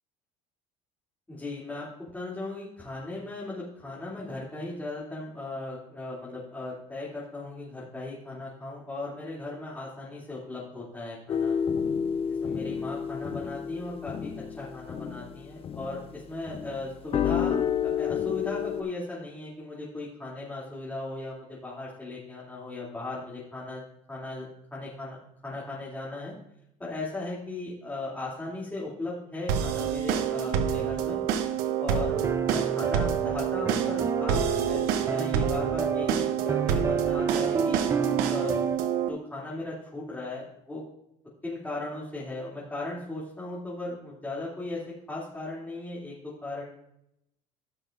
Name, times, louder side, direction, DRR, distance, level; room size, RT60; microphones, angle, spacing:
voice 1, 1.3-11.6 12.3-17.6 17.8-23.8 24.1-24.5 24.7-25.2 25.4-26.3 26.8-31.2 31.8-37.9 38.3-38.6 39.1-40.8 41.4-44.8 45.1-46.6, left 2 dB, 10° left, -7 dB, 2.8 m, -37 dB
sound 1, 11.3-16.1 16.5-18.8, left 8 dB, 40° left, 0.8 m, -30 dB
sound 2, 29.5-39.1, right 8 dB, 80° right, 0.9 m, -27 dB
sound 3, 32.1-38.8, right 5 dB, 20° right, 0.3 m, -31 dB
16.0 x 6.3 x 2.6 m, 0.81 s
supercardioid pair, 105°, 15 cm